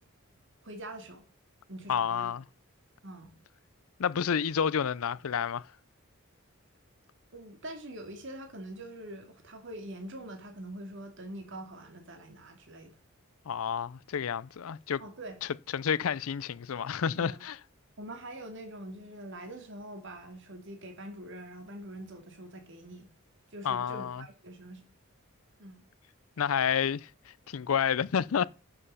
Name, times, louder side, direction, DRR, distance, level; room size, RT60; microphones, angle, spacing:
voice 1, 0.6-1.3 1.7-2.3 3.0-3.3 7.3-12.9 15.0-15.4 17.2-17.4 18.0-23.1 23.5-24.8 25.6-25.9, right 1 dB, 55° right, 2.6 m, -44 dB
voice 2, 1.9-2.4 4.0-5.7 13.5-15.0 15.7-17.6 23.6-24.2 26.4-28.4, left 7 dB, 75° left, 0.5 m, -30 dB
10.0 x 6.8 x 5.6 m
head